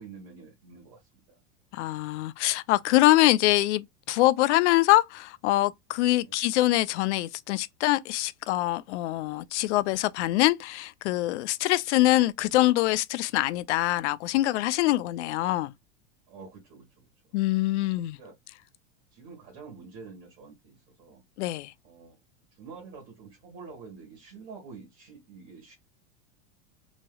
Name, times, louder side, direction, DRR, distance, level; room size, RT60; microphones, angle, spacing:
voice 1, 0.0-1.4 6.1-6.3 16.3-17.1 18.2-18.3 19.1-21.2 21.8-22.2 22.5-25.7, right 5 dB, 35° right, 1.7 m, -47 dB
voice 2, 1.7-15.7 17.3-18.2 21.4-21.7, left 17 dB, 75° left, 0.5 m, -24 dB
3.0 x 2.8 x 2.2 m
supercardioid pair, 155°, 35 cm